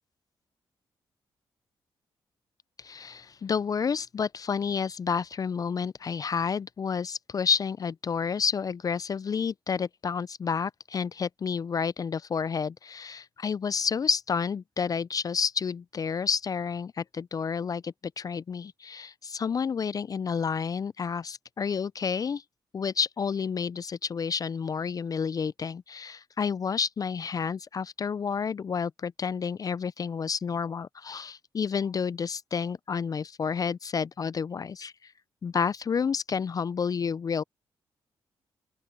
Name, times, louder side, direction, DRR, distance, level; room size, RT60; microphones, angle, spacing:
voice 1, 2.8-22.4 22.7-35.1 35.4-37.4, left 6 dB, 40° left, 0.4 m, -30 dB
open air
cardioid pair, 65°, 9 cm